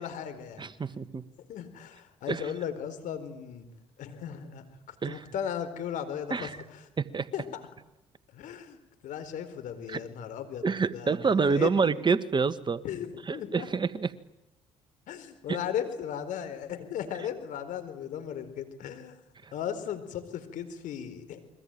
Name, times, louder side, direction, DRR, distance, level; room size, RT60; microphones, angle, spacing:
voice 1, 0.0-0.7 1.4-3.7 4.0-6.8 7.3-7.6 8.3-8.8 9.0-10.7 10.9-11.9 12.8-13.7 15.1-19.2 19.5-21.5, left 9 dB, 70° left, 9 dB, 4.3 m, -36 dB
voice 2, 0.6-1.2 2.3-2.4 5.0-5.2 6.3-6.6 7.0-7.3 9.9-10.0 10.6-12.8 13.3-14.1 19.4-19.5, right 5 dB, 35° right, 13 dB, 1.6 m, -27 dB
29.0 x 22.5 x 9.1 m, 0.91 s
hypercardioid pair, 55°, 14 cm